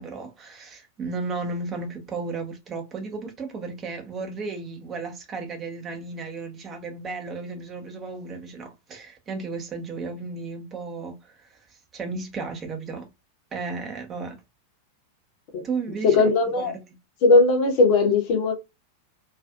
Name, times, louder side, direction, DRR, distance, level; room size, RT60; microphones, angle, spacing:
voice 1, 0.0-11.5 11.9-13.1 13.5-14.4 15.6-16.3 16.6-16.8, right 4 dB, 25° right, 0.7 m, -34 dB
voice 2, 16.0-16.7 17.2-18.5, left 3 dB, 45° left, 0.7 m, -18 dB
2.5 x 2.4 x 2.2 m
figure-of-eight pair, 90°, 0 cm